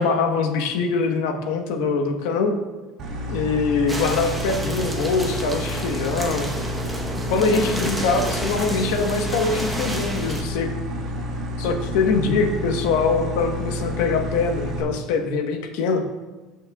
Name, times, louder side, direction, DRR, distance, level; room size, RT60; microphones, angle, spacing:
voice 1, 0.0-2.5 3.3-6.5 7.3-10.7 11.6-16.0, left 4 dB, 85° left, 4 dB, 1.2 m, -23 dB
sound 1, 3.0-14.8, left 1 dB, 45° right, 2.7 m, -30 dB
sound 2, 3.9-10.4, right 1 dB, 5° right, 1.0 m, -31 dB
19.0 x 6.4 x 2.4 m, 1.2 s
cardioid pair, 150°, 0 cm